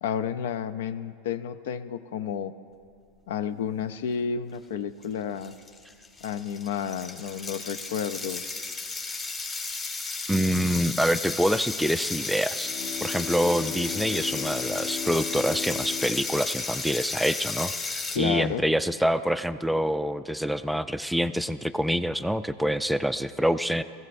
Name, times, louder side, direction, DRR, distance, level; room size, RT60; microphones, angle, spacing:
voice 1, 0.0-2.5 3.3-5.5 6.2-8.4 18.1-18.6, left 8 dB, 75° left, 13 dB, 0.4 m, -31 dB
sound 1, 5.0-5.1 5.4-18.2, left 3 dB, 25° left, 1.5 m, -34 dB
voice 2, 10.3-12.7 13.0-17.7 18.2-23.8, equal, ahead, 11 dB, 0.3 m, -26 dB
Bowed string instrument, 12.6-17.6, left 8 dB, 55° left, 1.2 m, -37 dB
17.5 x 15.0 x 2.6 m, 2.3 s
hypercardioid pair, 110°, 0 cm